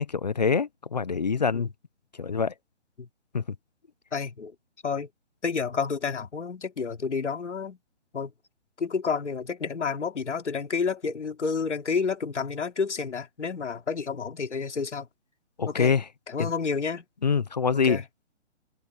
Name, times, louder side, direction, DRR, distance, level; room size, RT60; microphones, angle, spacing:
voice 1, 0.0-1.7 2.2-2.5 3.3-3.4 15.6-16.0 16.4-16.5 17.2-18.0, left 5 dB, 35° left, 0.8 m, -25 dB
voice 2, 4.1-4.5 4.8-5.1 5.4-7.8 8.1-8.3 8.8-15.1 15.7-16.0 16.3-17.0 17.7-18.0, left 5 dB, 80° left, 2.9 m, -30 dB
hypercardioid pair, 175°, 35 cm